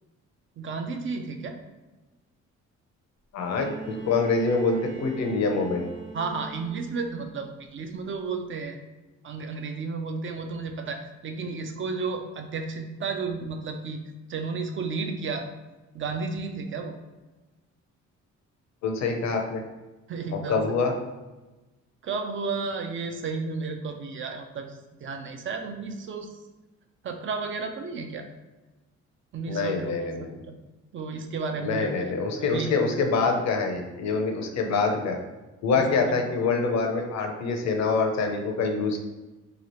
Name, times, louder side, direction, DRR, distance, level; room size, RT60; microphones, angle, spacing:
voice 1, 0.6-1.6 6.1-8.8 9.2-14.0 14.3-15.4 15.9-16.9 20.1-20.6 22.0-26.3 27.0-28.3 29.3-30.1 30.5-30.6 30.9-32.1 32.4-32.8 35.7-36.0, right 4 dB, 40° right, 5 dB, 0.4 m, -32 dB
voice 2, 3.3-5.9 18.8-19.6 20.5-20.9 29.5-30.4 31.6-35.2 35.6-39.0, left 4 dB, 60° left, 3 dB, 0.6 m, -25 dB
Bowed string instrument, 3.4-7.4 8.6-8.7, right 3 dB, 55° right, 1.1 m, -42 dB
3.0 x 2.4 x 2.9 m, 1.1 s
cardioid pair, 90°, 30 cm